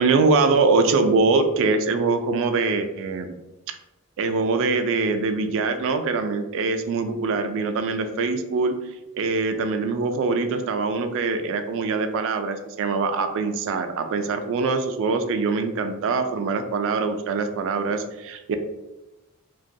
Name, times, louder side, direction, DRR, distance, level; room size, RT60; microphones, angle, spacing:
voice 1, 0.0-3.3 4.2-8.7 9.1-18.6, right 4 dB, 60° right, 8 dB, 0.3 m, -23 dB
2.8 x 2.2 x 2.6 m, 1.0 s
head